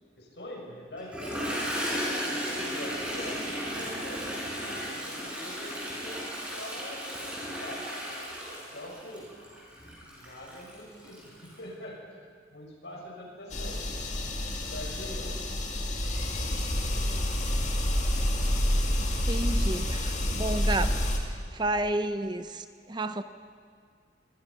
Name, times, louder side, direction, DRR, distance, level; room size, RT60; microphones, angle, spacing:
voice 1, 0.2-4.3 4.6-8.0 8.5-9.3 10.0-12.0 12.5-15.4, left 1 dB, 70° left, -1 dB, 6.8 m, -44 dB
Toilet flush, 1.0-11.5, equal, 5° right, 6.3 m, -35 dB
sound 1, 13.5-21.2, left 1 dB, 40° left, 2.4 m, -28 dB
voice 2, 19.0-23.2, right 2 dB, 25° right, 10 dB, 0.7 m, -32 dB
27.0 x 21.5 x 5.7 m, 2.1 s
head